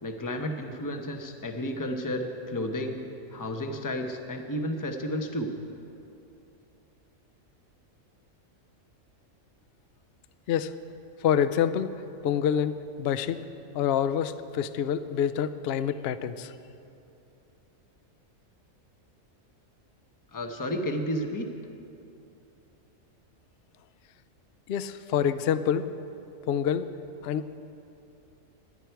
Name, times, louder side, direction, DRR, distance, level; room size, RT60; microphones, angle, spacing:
voice 1, 0.0-5.5 20.3-21.5, equal, 15° left, 4 dB, 0.8 m, -32 dB
voice 2, 11.2-11.9 12.2-13.4 13.7-16.5 24.7-25.9 26.5-26.9 27.2-27.5, left 8 dB, 60° left, 12 dB, 0.7 m, -27 dB
24.5 x 10.5 x 4.6 m, 2.7 s
omnidirectional pair, 1.4 m